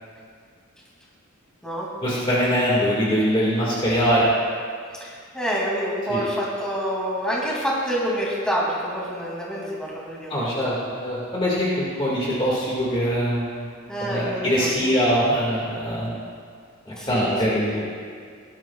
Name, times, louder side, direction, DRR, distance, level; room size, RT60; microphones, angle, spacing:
voice 1, 2.0-4.3 6.1-6.2 10.3-13.7 14.0-16.1 16.9-17.8, equal, 25° left, -6 dB, 1.9 m, -23 dB
voice 2, 4.9-10.7 13.9-14.9 16.8-17.8, equal, 5° left, -5 dB, 2.6 m, -28 dB
17.5 x 12.0 x 2.4 m, 2.1 s
head